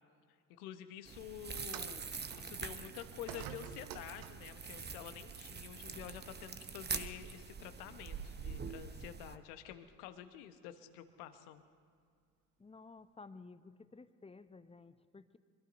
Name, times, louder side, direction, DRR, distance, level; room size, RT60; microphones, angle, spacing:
voice 1, 0.6-2.1 2.3-11.6, left 11 dB, 75° left, 10 dB, 1.2 m, -49 dB
sound 1, 1.1-9.4, right 5 dB, 20° right, 0.9 m, -45 dB
sound 2, 1.6-4.6 5.6-5.8 6.6-6.7, right 10 dB, 70° right, 1.0 m, -50 dB
voice 2, 12.6-15.4, left 3 dB, 15° left, 12 dB, 0.8 m, -54 dB
24.5 x 22.0 x 2.7 m, 2.1 s
hypercardioid pair, 50°, 45 cm